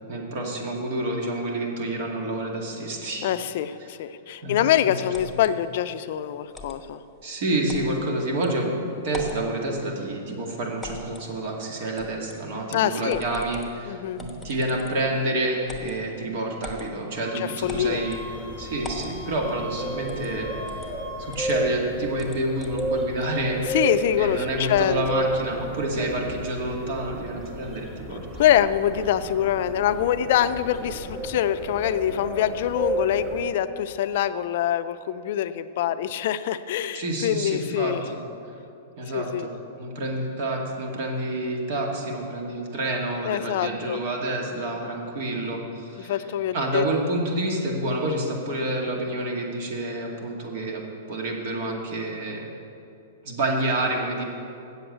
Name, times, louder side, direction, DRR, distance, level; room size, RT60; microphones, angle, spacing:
voice 1, 0.1-3.3 4.4-5.0 5.3-5.4 7.2-8.7 9.0-18.2 18.6-20.7 21.2-23.8 24.2-28.2 36.9-38.2 39.0-46.2 46.5-50.8 51.1-52.5 53.2-54.2, right 1 dB, 60° right, 0 dB, 2.2 m, -28 dB
voice 2, 3.2-7.0 12.7-13.2 13.9-14.2 17.3-18.0 23.7-25.3 28.4-38.0 39.1-39.5 43.2-44.0 46.0-46.8, left 10 dB, 60° left, 12 dB, 0.4 m, -24 dB
sound 1, 5.1-5.5 6.5-6.8 7.7-7.9 8.4-8.5 9.0-9.4 10.8-11.3 12.0-12.4 13.1-13.7 14.2-15.1 15.6-16.0 16.6-16.9 17.7-18.2 18.8-19.1 20.1-20.3 20.7-20.9 21.3-21.5 22.2-22.9, left 2 dB, ahead, 1.1 m, -40 dB
Wind instrument woodwind instrument, 17.1-21.4, equal, 90° right, 2.8 m, -41 dB
sound 2, 17.6-33.4, right 1 dB, 15° right, 1.7 m, -33 dB
8.0 x 7.8 x 8.0 m, 2.8 s
hypercardioid pair, 135°, 0 cm